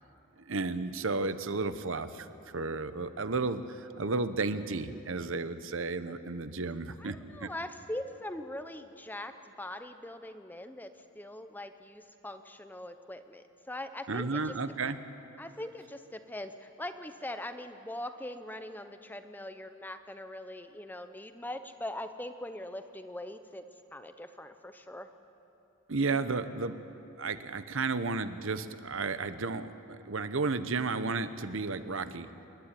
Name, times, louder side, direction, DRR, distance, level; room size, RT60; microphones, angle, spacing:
voice 1, 0.5-2.3 2.5-7.5 14.1-15.0 25.9-26.8 27.2-32.3, right 3 dB, 60° right, 12 dB, 0.9 m, -33 dB
voice 2, 7.0-10.9 11.2-14.5 15.4-23.6 23.9-25.1, left 1 dB, 10° left, 9 dB, 0.7 m, -42 dB
26.5 x 12.0 x 10.0 m, 3.0 s
head